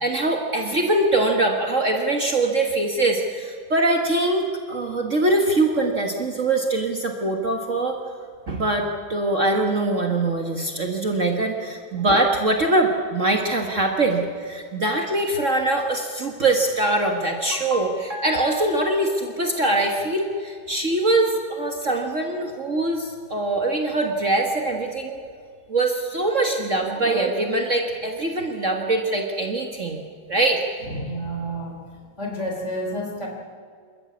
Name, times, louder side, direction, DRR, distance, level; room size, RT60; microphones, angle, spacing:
voice 1, 0.0-8.0 8.5-25.2 25.7-30.0 30.3-30.6, right 2 dB, 40° right, 2 dB, 1.8 m, -23 dB
voice 2, 30.8-31.8 32.2-33.3, equal, 35° left, 0 dB, 3.9 m, -30 dB
27.5 x 14.0 x 8.5 m, 2.1 s
omnidirectional pair, 2.2 m